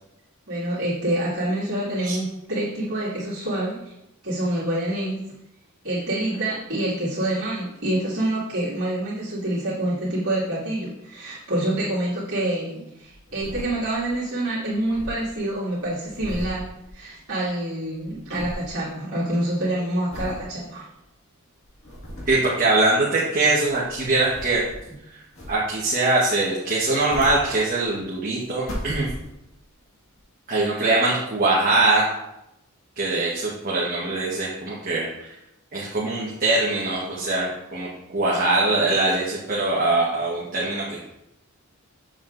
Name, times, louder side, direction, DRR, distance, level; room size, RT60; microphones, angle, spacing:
voice 1, 0.5-3.9 4.2-5.2 5.8-16.7 16.9-20.8, right 1 dB, 65° right, -12 dB, 2.3 m, -27 dB
sound 1, 13.0-14.2 14.4-14.5 14.7-17.5 17.8-18.8 19.2-19.5 20.1-20.5 21.0-21.1 21.6-22.5 23.5-24.9 25.3-25.9 26.7-28.0 28.4-29.6 30.2-30.3, equal, 65° left, 1.9 m, -37 dB
voice 2, 22.3-24.6 25.1-25.2 25.5-29.1 30.5-32.1 33.0-35.3 35.7-41.1, right 2 dB, 40° right, -5 dB, 1.2 m, -22 dB
7.4 x 7.1 x 2.5 m, 0.86 s
head